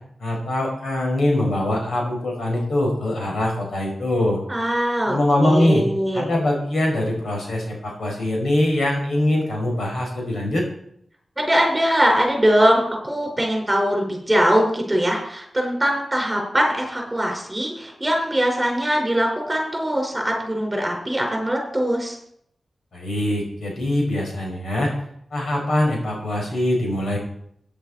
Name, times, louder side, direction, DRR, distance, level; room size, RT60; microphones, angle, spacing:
voice 1, 0.2-4.4 5.1-5.8 6.1-10.6 22.9-24.9 25.3-27.2, left 1 dB, 85° left, 0 dB, 4.9 m, -22 dB
voice 2, 4.5-6.3 11.4-22.2, equal, 15° right, 0 dB, 4.5 m, -21 dB
15.5 x 9.5 x 4.2 m, 0.70 s
wide cardioid pair, 105°, 0 cm